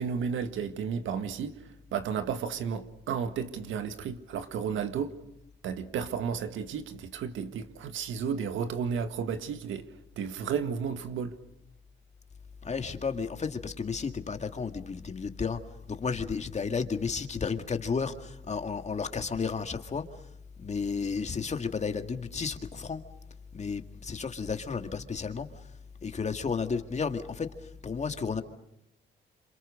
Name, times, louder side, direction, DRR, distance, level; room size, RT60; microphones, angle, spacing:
voice 1, 0.0-1.6 1.9-5.2 5.6-9.9 10.1-11.4, right 6 dB, 80° right, 1.9 m, -33 dB
voice 2, 12.6-15.6 15.9-20.2 20.6-23.0 23.5-25.7 26.0-28.4, left 5 dB, 35° left, 2.2 m, -32 dB
27.5 x 26.0 x 6.6 m
cardioid pair, 90°, 20 cm